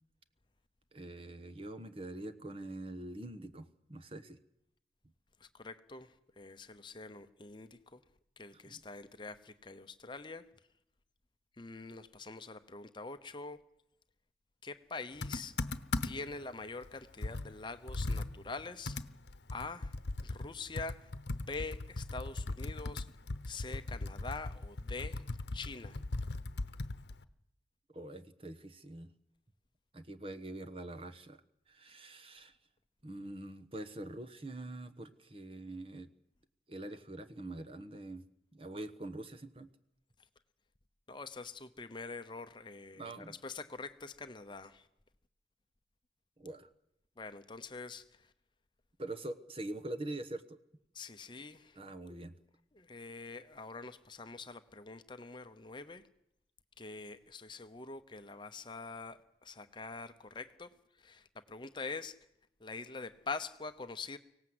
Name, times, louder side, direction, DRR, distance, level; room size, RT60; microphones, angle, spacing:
voice 1, 0.9-4.4 8.5-8.8 27.9-29.1 29.9-31.4 31.7-32.6 33.0-36.1 36.7-38.2 38.5-39.7 42.9-43.4 46.4-46.7 49.0-50.6 51.8-52.3, right 1 dB, 30° right, 10 dB, 1.1 m, -44 dB
voice 2, 5.4-8.0 8.4-10.4 11.6-13.6 14.6-15.5 16.0-19.0 19.5-19.9 20.2-23.1 23.5-25.2 25.5-26.0 41.1-44.9 47.2-48.3 50.9-52.2 52.7-56.0 56.8-62.1 62.6-64.2, left 4 dB, 25° left, 9 dB, 0.8 m, -45 dB
Computer keyboard, 15.2-16.4 16.8-16.9 17.2-20.5 20.8-27.2, left 2 dB, 85° left, 0.9 m, -39 dB
24.5 x 17.5 x 7.9 m, 0.80 s
head